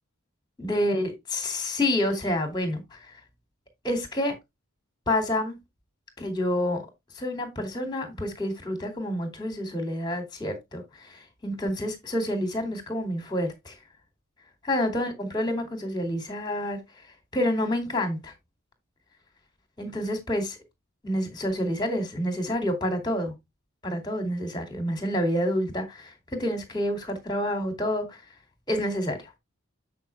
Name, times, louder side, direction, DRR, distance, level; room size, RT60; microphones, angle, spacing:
voice 1, 0.6-3.1 3.8-4.4 5.1-5.6 6.2-6.9 7.1-13.8 14.6-16.8 17.3-18.3 19.8-20.6 21.0-23.3 23.8-28.2 28.7-29.3, left 1 dB, 20° left, 2.7 m, -28 dB
9.0 x 5.4 x 3.5 m
head